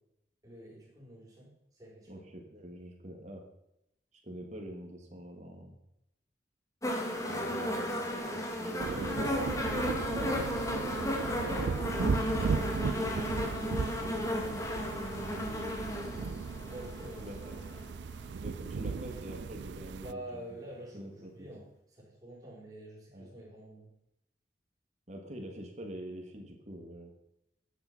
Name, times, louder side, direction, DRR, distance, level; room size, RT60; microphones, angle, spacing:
voice 1, 0.4-2.3 7.5-8.1 9.6-10.4 16.7-17.7 20.0-23.9, right 1 dB, 20° right, -5 dB, 5.8 m, -48 dB
voice 2, 2.1-3.4 4.2-5.7 7.3-7.9 8.3-9.3 11.4-16.3 17.2-17.5 18.4-20.6 20.9-21.5 23.1-23.3 25.1-27.1, right 1 dB, 40° right, 2 dB, 3.0 m, -45 dB
sound 1, 6.8-17.9 18.8-18.9, left 1 dB, 15° left, 2.5 m, -34 dB
sound 2, 8.8-20.1, right 5 dB, 70° right, 0.4 m, -36 dB
13.5 x 10.0 x 5.7 m, 0.82 s
head